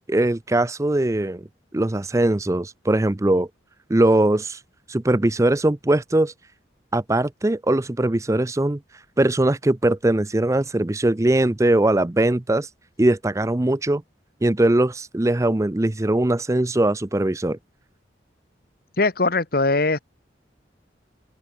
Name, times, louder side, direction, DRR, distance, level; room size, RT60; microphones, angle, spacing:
voice 1, 0.1-1.5 1.7-3.5 3.9-4.6 4.9-6.3 6.9-8.8 9.2-12.7 13.0-14.0 14.4-17.6, right 1 dB, 15° right, 0.5 m, -20 dB
voice 2, 19.0-20.0, left 3 dB, 55° left, 1.5 m, -20 dB
open air
head